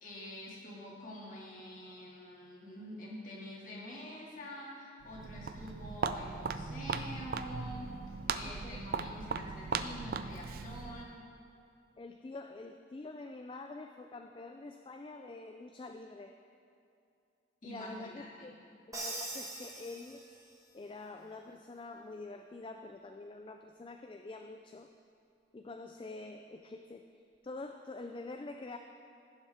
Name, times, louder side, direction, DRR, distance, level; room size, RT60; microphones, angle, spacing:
voice 1, 0.0-7.9 8.3-11.3 17.6-18.6, equal, 45° left, -4 dB, 2.1 m, -46 dB
Walk footsteps, 5.0-11.2, right 5 dB, 50° right, 0.4 m, -38 dB
voice 2, 8.4-9.1 12.0-16.3 17.6-18.5 18.9-20.2 20.7-24.9 25.5-27.1 27.4-28.8, left 3 dB, 25° left, 5 dB, 0.3 m, -46 dB
Crash cymbal, 18.9-20.7, right 2 dB, 20° right, 1.1 m, -42 dB
16.5 x 7.2 x 3.5 m, 2.6 s
head